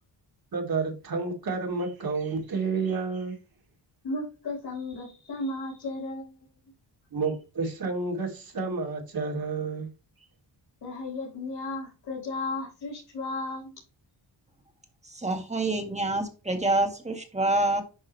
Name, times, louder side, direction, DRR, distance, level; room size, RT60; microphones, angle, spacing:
voice 1, 0.5-3.4 7.1-9.9, right 4 dB, 55° right, 2.9 m, -30 dB
voice 2, 4.0-6.4 10.8-13.8, left 2 dB, 60° left, 4.1 m, -34 dB
voice 3, 15.0-17.8, right 2 dB, 15° right, 1.7 m, -27 dB
10.5 x 3.7 x 3.1 m
cardioid pair, 110°, 43 cm